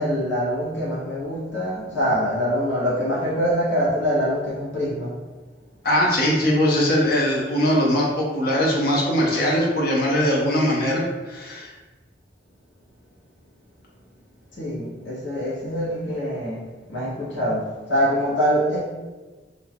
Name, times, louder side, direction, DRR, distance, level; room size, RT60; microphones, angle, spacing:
voice 1, 0.0-5.2 14.6-16.6 16.9-18.9, equal, 85° left, -7 dB, 1.1 m, -24 dB
voice 2, 5.8-11.7, equal, 55° left, -3 dB, 0.7 m, -21 dB
2.6 x 2.3 x 3.5 m, 1.3 s
head